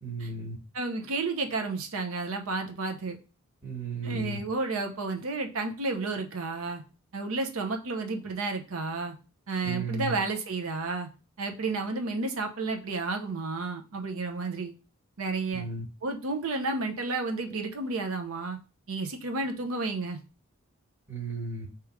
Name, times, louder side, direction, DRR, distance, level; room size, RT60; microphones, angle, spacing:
voice 1, 0.0-0.6 3.6-4.4 9.6-10.1 15.5-15.8 21.1-21.7, right 4 dB, 10° right, -4 dB, 1.1 m, -34 dB
voice 2, 0.7-3.2 4.0-6.8 7.1-9.1 9.5-11.1 11.4-14.7 15.2-15.7 16.0-18.6 18.9-20.2, right 3 dB, 70° right, 4 dB, 0.7 m, -31 dB
3.5 x 3.0 x 4.7 m, 0.33 s
head